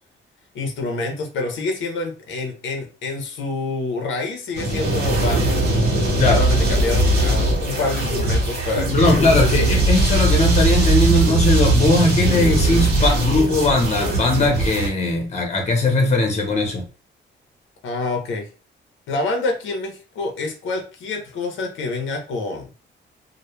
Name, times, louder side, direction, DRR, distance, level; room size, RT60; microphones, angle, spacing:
voice 1, 0.5-5.5 6.4-9.5 17.8-18.5 19.1-22.7, left 3 dB, 80° left, 3 dB, 0.6 m, -27 dB
sound 1, 4.5-14.9, right 2 dB, 50° right, 0.9 m, -19 dB
voice 2, 8.9-16.8, left 2 dB, 35° left, 2 dB, 0.7 m, -19 dB
2.1 x 2.1 x 3.0 m, 0.35 s
cardioid pair, 130°, 19 cm